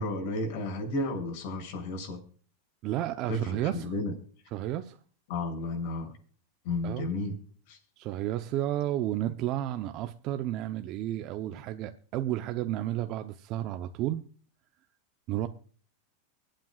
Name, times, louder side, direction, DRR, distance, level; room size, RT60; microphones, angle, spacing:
voice 1, 0.0-2.2 3.3-4.1 5.3-6.1 6.6-7.4 7.7-7.8, left 2 dB, 60° left, 1 dB, 7.0 m, -32 dB
voice 2, 2.8-3.9 4.5-5.0 6.8-7.1 8.0-14.2 15.3-15.5, right 13 dB, 45° right, 8 dB, 0.8 m, -32 dB
24.0 x 9.0 x 2.5 m, 0.43 s
supercardioid pair, 125°, 0 cm